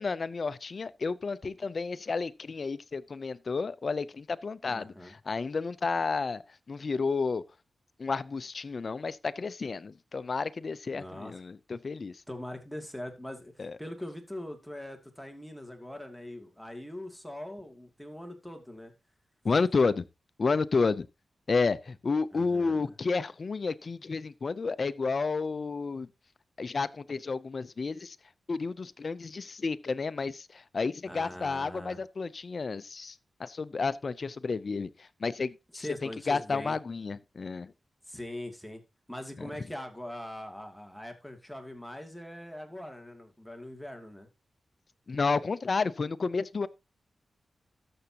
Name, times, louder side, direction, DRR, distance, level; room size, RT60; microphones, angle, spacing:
voice 1, 0.0-6.4 6.7-7.4 8.0-12.2 13.6-13.8 19.4-20.0 20.4-21.1 21.5-26.1 26.6-28.2 28.5-37.7 39.4-39.5 45.1-46.7, left 4 dB, 55° left, 0.6 m, -31 dB
voice 2, 4.7-5.2 10.9-11.4 12.3-18.9 22.3-22.9 31.0-32.0 35.8-36.8 38.1-38.8 39.1-44.3, left 1 dB, ahead, 2.5 m, -42 dB
13.0 x 7.0 x 2.9 m
cardioid pair, 50°, 0 cm